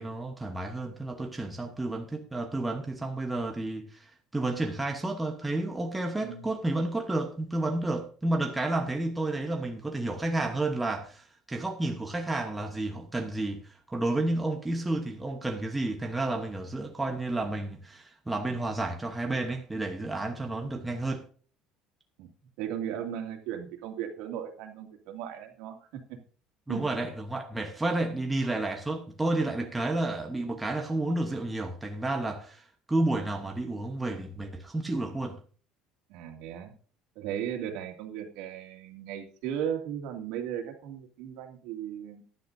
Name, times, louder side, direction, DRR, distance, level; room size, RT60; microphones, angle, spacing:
voice 1, 0.0-21.2 26.7-35.4, right 2 dB, 5° right, 1.0 m, -31 dB
voice 2, 22.6-26.0 26.7-26.8 36.1-36.7 37.2-42.2, right 9 dB, 70° right, 2.3 m, -36 dB
15.0 x 10.5 x 2.7 m
cardioid pair, 175°, 0 cm